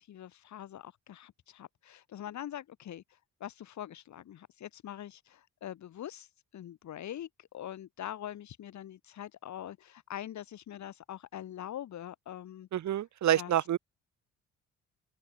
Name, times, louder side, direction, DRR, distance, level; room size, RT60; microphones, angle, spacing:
voice 1, 0.0-12.7 13.3-13.7, left 11 dB, 70° left, 3.5 m, -44 dB
voice 2, 12.7-13.8, right 11 dB, 70° right, 2.8 m, -27 dB
open air
cardioid pair, 90°, 30 cm